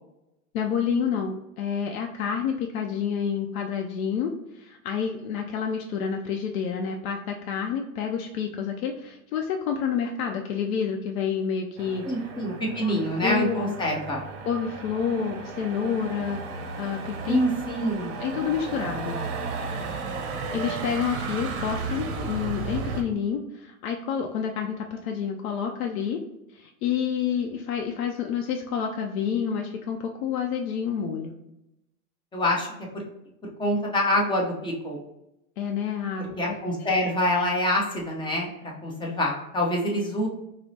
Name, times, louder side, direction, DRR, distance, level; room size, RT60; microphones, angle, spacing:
voice 1, 0.5-12.0 12.8-13.7 14.4-16.4 16.8-17.4 18.2-19.2 20.5-26.2 26.5-31.3 35.6-36.9, left 7 dB, 65° left, 3 dB, 0.5 m, -29 dB
Motor vehicle (road), 11.8-23.0, right 4 dB, 50° right, 0.7 m, -34 dB
voice 2, 12.0-14.2 17.3-18.1 32.3-32.7 32.9-33.0 33.6-35.0 36.4-38.5 38.8-40.3, left 1 dB, 10° left, -2 dB, 0.6 m, -26 dB
4.4 x 2.0 x 2.7 m, 0.88 s
hypercardioid pair, 110°, 44 cm